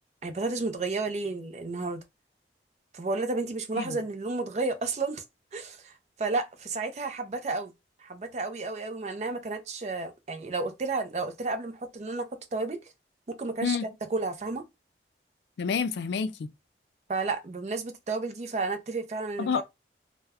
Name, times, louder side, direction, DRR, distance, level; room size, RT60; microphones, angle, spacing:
voice 1, 0.2-2.0 2.9-5.2 5.5-5.9 6.2-7.7 8.0-12.8 13.3-13.8 14.1-14.7 17.1-19.6, right 3 dB, 40° right, 0.4 m, -32 dB
voice 2, 15.6-16.5 19.4-19.6, left 6 dB, 75° left, 0.3 m, -28 dB
2.2 x 2.1 x 3.4 m
head